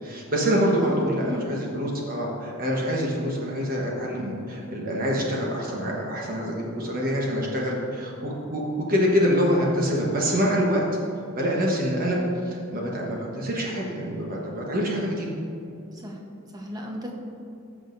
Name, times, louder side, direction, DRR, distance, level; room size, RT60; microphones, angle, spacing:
voice 1, 0.0-10.9 11.3-12.2 12.4-15.3, equal, 40° right, -2 dB, 1.1 m, -25 dB
voice 2, 0.8-1.5 15.9-16.2 16.5-17.1, equal, 15° right, 0 dB, 0.9 m, -35 dB
13.5 x 6.1 x 2.6 m, 2.8 s
head